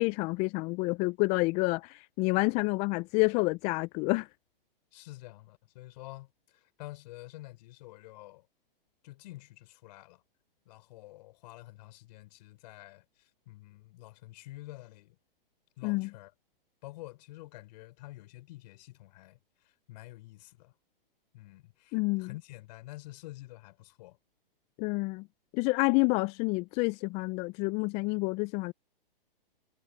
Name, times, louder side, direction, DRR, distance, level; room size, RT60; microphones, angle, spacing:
voice 1, 0.0-4.3 15.8-16.1 21.9-22.3 24.8-25.2 25.5-28.7, left 26 dB, 25° left, 0.5 m, -28 dB
voice 2, 4.9-6.3 6.5-8.5 9.0-10.2 10.7-15.2 15.8-16.3 16.8-19.4 19.6-20.7 21.3-24.2, left 18 dB, 45° left, 4.7 m, -48 dB
hypercardioid pair, 125°, 29 cm